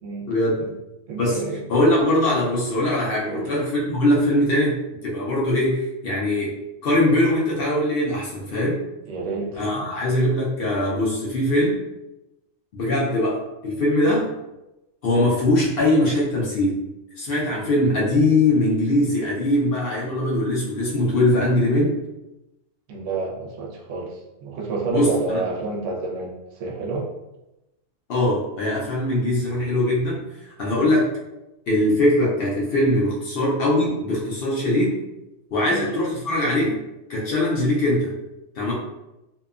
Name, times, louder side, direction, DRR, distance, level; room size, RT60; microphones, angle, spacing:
voice 1, 0.3-0.6 1.2-1.4 1.7-6.5 6.8-8.8 9.6-11.8 12.7-14.3 15.0-16.8 17.2-22.0 24.9-25.4 28.1-30.2 30.6-31.1 31.7-35.0 35.5-36.8 37.1-38.1 38.6-38.7, left 1 dB, 60° left, -5 dB, 0.7 m, -21 dB
voice 2, 1.1-1.6 3.3-3.6 9.1-9.9 14.0-14.2 22.9-27.1 35.7-35.9, right 3 dB, 75° right, -1 dB, 0.9 m, -29 dB
2.8 x 2.2 x 2.4 m, 0.95 s
omnidirectional pair, 1.3 m